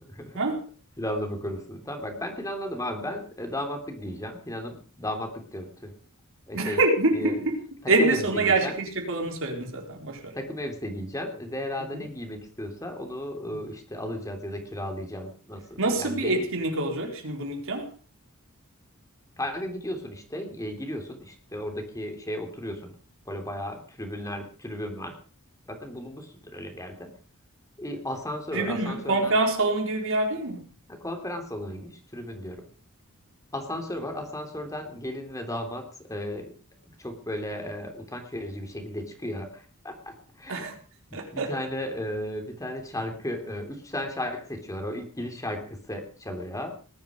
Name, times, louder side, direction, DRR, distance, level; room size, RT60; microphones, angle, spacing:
voice 1, 0.1-0.4 1.0-5.9 6.5-6.8 7.1-7.3 7.8-8.7 10.3-16.4 19.4-23.0 23.3-25.2 25.7-27.1 27.8-29.3 30.9-32.7 33.5-36.5 37.0-40.8 41.1-46.7, left 1 dB, 15° left, 3.2 m, -35 dB
voice 2, 6.5-7.6 7.9-10.3 11.9-12.1 15.8-17.9 28.5-30.6 40.5-40.7 41.1-41.5, right 2 dB, 65° right, 4.3 m, -26 dB
19.5 x 12.5 x 5.2 m
head